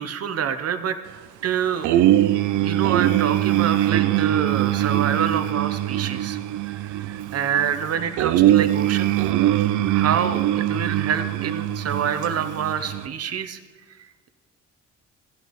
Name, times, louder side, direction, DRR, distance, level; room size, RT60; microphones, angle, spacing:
voice 1, 0.0-9.1 9.6-13.6, right 8 dB, 55° right, 9 dB, 0.8 m, -27 dB
sound 1, 1.8-13.1, right 13 dB, 75° right, 0.4 m, -22 dB
15.5 x 8.1 x 3.1 m, 1.4 s
cardioid pair, 90°, 30 cm